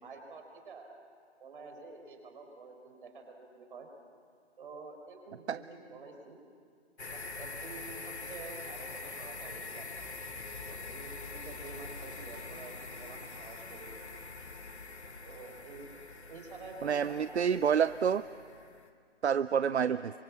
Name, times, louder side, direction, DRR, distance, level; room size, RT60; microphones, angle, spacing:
voice 1, 0.0-0.9 1.4-3.9 4.6-6.4 7.1-9.8 10.7-12.7 13.0-14.0 15.2-15.9 16.3-17.4 19.8-20.1, right 3 dB, 50° right, 3 dB, 5.0 m, -49 dB
sound 1, 7.0-18.9, left 3 dB, 85° left, 2.3 m, -44 dB
sound 2, 9.9-15.6, left 5 dB, 25° left, 1.8 m, -56 dB
voice 2, 16.8-18.2 19.2-20.1, right 7 dB, 80° right, 14 dB, 0.7 m, -28 dB
27.0 x 24.5 x 7.3 m, 2.2 s
figure-of-eight pair, 150°, 33 cm